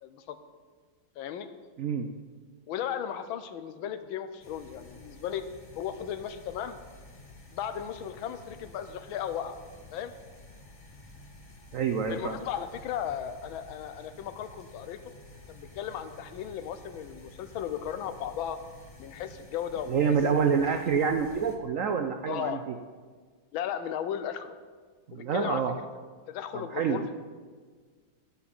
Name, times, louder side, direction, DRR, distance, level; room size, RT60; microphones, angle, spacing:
voice 1, 0.0-0.4 1.2-1.5 2.7-5.4 5.7-6.8 7.5-9.6 9.9-10.1 12.1-15.0 15.5-18.6 19.0-20.0 22.3-22.6 23.5-24.6 25.1-25.9 26.3-27.2, left 9 dB, 90° left, 11 dB, 1.5 m, -36 dB
voice 2, 1.8-2.1 11.7-12.4 19.9-22.7 25.1-25.7 26.5-27.2, right 6 dB, 90° right, 6 dB, 0.7 m, -27 dB
sound 1, 4.4-21.6, left 2 dB, 25° left, 0.8 m, -51 dB
10.0 x 5.7 x 8.0 m, 1.5 s
omnidirectional pair, 2.2 m